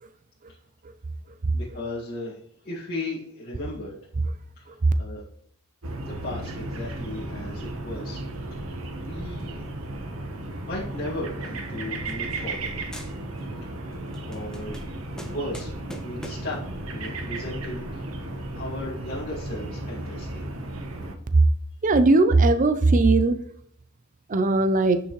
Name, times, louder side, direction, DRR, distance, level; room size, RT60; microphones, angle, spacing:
voice 1, 1.5-2.4 2.6-4.0 4.6-5.2 6.0-8.2 8.5-9.6 10.6-12.7 13.6-13.9 14.3-14.7 15.2-15.8 16.0-16.6 16.9-18.1 18.5-20.4, left 1 dB, 50° left, -8 dB, 2.0 m, -36 dB
sound 1, 5.8-21.2, right 2 dB, 85° right, 1.2 m, -34 dB
sound 2, 11.3-12.7 12.9-13.6 13.9-16.6, right 1 dB, 5° left, 1.0 m, -43 dB
voice 2, 21.8-23.4 24.3-25.0, right 2 dB, 40° right, 10 dB, 0.5 m, -19 dB
10.0 x 5.8 x 3.1 m, 0.67 s
head